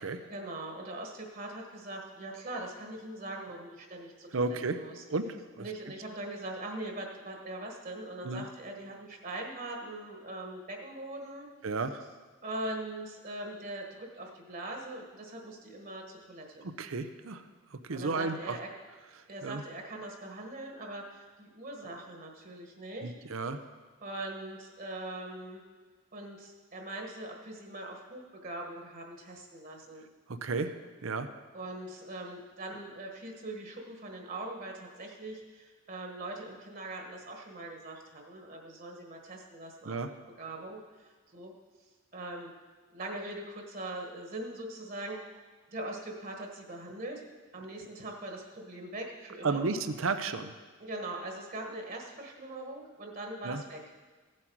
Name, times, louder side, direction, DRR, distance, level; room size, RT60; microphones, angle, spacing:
voice 1, 0.2-5.0 5.6-11.5 12.4-16.7 17.9-18.7 19.3-23.1 24.0-25.6 26.1-30.1 31.5-40.0 40.3-41.5 42.1-42.5 42.9-45.2 45.7-47.2 47.5-49.7 50.8-53.8, right 1 dB, 45° right, 1 dB, 1.4 m, -41 dB
voice 2, 4.3-4.8 5.1-5.3 5.6-5.7 8.2-8.4 11.6-12.0 16.8-17.4 17.9-18.3 19.4-19.6 23.0-23.6 30.4-30.7 31.0-31.3 39.9-40.1 49.4-50.5 53.4-53.6, right 4 dB, 70° right, 10 dB, 0.6 m, -32 dB
15.5 x 7.6 x 4.6 m, 1.4 s
head